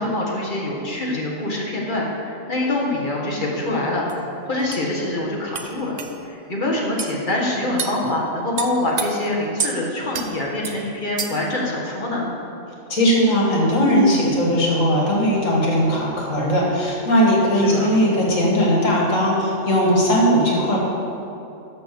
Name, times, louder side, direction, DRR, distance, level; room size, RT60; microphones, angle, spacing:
voice 1, 0.0-4.1 4.5-5.9 6.2-12.3 17.5-17.9, left 1 dB, 40° left, -2 dB, 1.6 m, -25 dB
sound 1, 4.1-4.2 4.7-4.8 5.5-5.7 6.0-6.1 7.0-7.1 7.8-8.0 8.6-9.1 9.6-9.8 10.1-10.3 10.6-10.8 11.2-11.5, right 6 dB, 45° right, 0.5 m, -28 dB
voice 2, 12.9-20.8, equal, 70° left, -3 dB, 2.3 m, -18 dB
12.0 x 4.2 x 6.8 m, 2.8 s
omnidirectional pair, 1.4 m